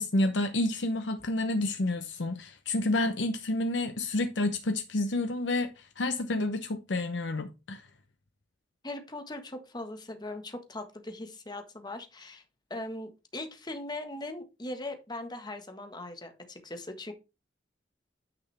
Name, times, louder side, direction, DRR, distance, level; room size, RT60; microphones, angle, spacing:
voice 1, 0.0-7.9, left 2 dB, 90° left, 0.8 m, -29 dB
voice 2, 8.8-12.4 12.7-17.1, left 2 dB, 25° left, 1.5 m, -40 dB
9.7 x 5.8 x 3.4 m
head